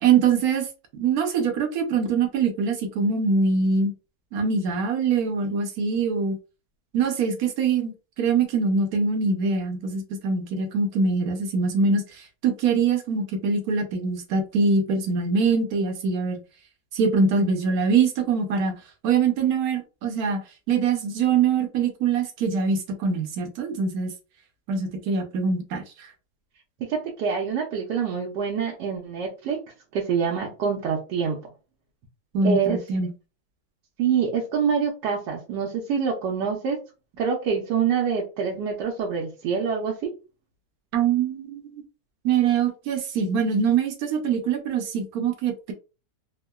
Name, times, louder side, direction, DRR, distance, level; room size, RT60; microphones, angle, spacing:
voice 1, 0.0-0.7 0.9-3.9 4.3-6.4 6.9-16.4 16.9-18.8 19.0-20.4 20.7-24.1 24.7-26.1 32.3-33.1 40.9-41.8 42.2-45.7, right 5 dB, 65° right, 1.1 m, -23 dB
voice 2, 26.9-29.6 29.9-31.4 32.4-32.8 34.0-36.8 37.2-40.1, right 6 dB, 85° right, 1.3 m, -26 dB
3.6 x 2.1 x 2.2 m
omnidirectional pair, 1.8 m